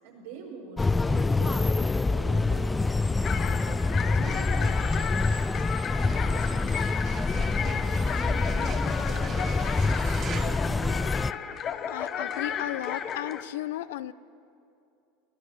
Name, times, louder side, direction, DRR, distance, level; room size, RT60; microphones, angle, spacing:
voice 1, 0.0-2.7 3.0-9.9 10.3-11.2, right 4 dB, 75° right, -1 dB, 5.8 m, -45 dB
sound 1, 0.8-11.3, left 3 dB, 15° left, 0.4 m, -26 dB
sound 2, 3.2-13.4, left 8 dB, 40° left, 1.3 m, -34 dB
sound 3, 4.0-11.5, right 7 dB, 35° right, 1.2 m, -44 dB
voice 2, 11.9-14.1, left 14 dB, 70° left, 16 dB, 0.7 m, -34 dB
22.0 x 17.5 x 6.9 m, 2.6 s
hypercardioid pair, 90°, 0 cm